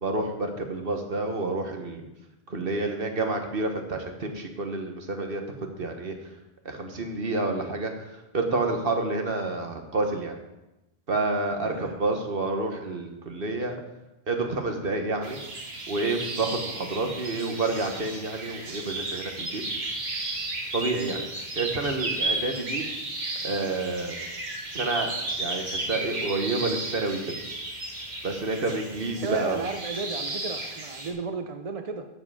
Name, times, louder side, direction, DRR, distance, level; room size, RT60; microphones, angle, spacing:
voice 1, 0.0-2.0 2.5-6.1 6.6-7.9 8.3-10.3 11.1-13.8 14.3-15.4 15.9-19.6 20.7-21.3 21.6-22.9 23.4-24.2 24.7-25.1 25.4-27.3 28.2-29.6, right 3 dB, 65° right, 4 dB, 1.6 m, -29 dB
voice 2, 11.6-12.0 29.2-32.1, right 4 dB, 40° right, 6 dB, 0.7 m, -33 dB
sound 1, 15.2-31.1, right 2 dB, 90° right, 2.2 m, -34 dB
13.0 x 7.6 x 5.0 m, 0.96 s
omnidirectional pair, 1.0 m